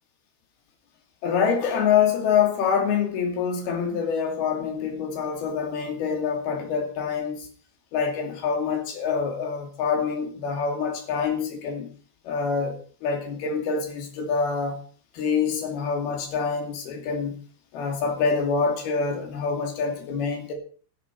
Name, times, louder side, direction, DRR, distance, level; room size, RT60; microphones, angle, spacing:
voice 1, 1.2-7.5 7.9-11.9 12.2-14.8 15.1-17.4 17.7-20.5, left 6 dB, 80° left, 3 dB, 4.4 m, -26 dB
14.5 x 10.5 x 4.8 m, 0.42 s
omnidirectional pair, 4.4 m